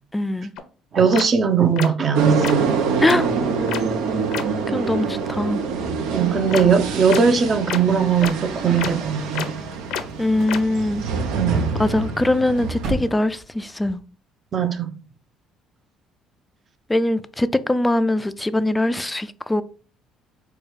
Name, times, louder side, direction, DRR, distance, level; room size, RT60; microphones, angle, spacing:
voice 1, 0.1-0.5 3.0-3.3 4.7-5.6 10.2-11.0 11.8-14.0 16.9-19.6, left 1 dB, 10° left, 0.3 m, -22 dB
sound 1, 0.6-0.7 1.1-1.2 1.8-1.9 2.4-2.5 3.0-3.2 3.7-3.8 4.3-4.4 6.5-6.6 7.1-7.2 7.7-7.8 8.2-8.3 8.8-8.9 9.4-9.5 9.9-10.0 10.5-10.6, left 8 dB, 75° left, 0.6 m, -27 dB
voice 2, 0.9-2.3 6.1-9.5 11.3-11.7 14.5-14.9, right 6 dB, 40° right, 0.7 m, -19 dB
sound 2, 2.1-13.1, right 5 dB, 85° right, 0.7 m, -25 dB
sound 3, 8.0-13.9, right 2 dB, 60° right, 1.0 m, -38 dB
4.6 x 2.3 x 4.7 m
cardioid pair, 105°, 0 cm